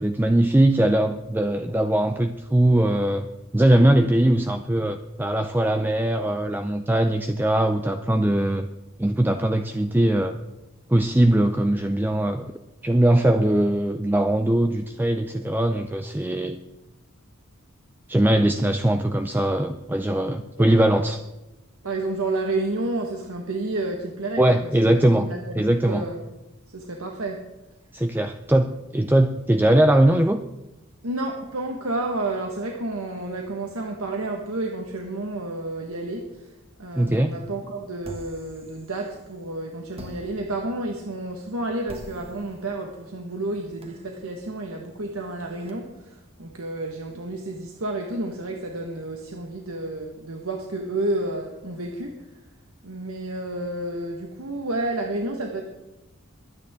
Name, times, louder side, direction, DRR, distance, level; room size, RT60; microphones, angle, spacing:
voice 1, 0.0-3.3 3.5-8.7 9.0-10.4 10.9-12.5 12.8-16.6 18.1-21.2 24.4-25.3 25.6-26.0 27.9-30.4 37.0-37.3, right 1 dB, 10° right, 7 dB, 0.4 m, -21 dB
voice 2, 21.8-26.3 26.7-27.4 31.0-36.3 36.8-52.1 52.8-55.6, right 2 dB, 85° right, 1 dB, 1.5 m, -30 dB
sound 1, 38.0-39.4 39.9-45.7, right 1 dB, 25° right, 1.5 m, -46 dB
22.5 x 9.4 x 3.7 m, 1.0 s
head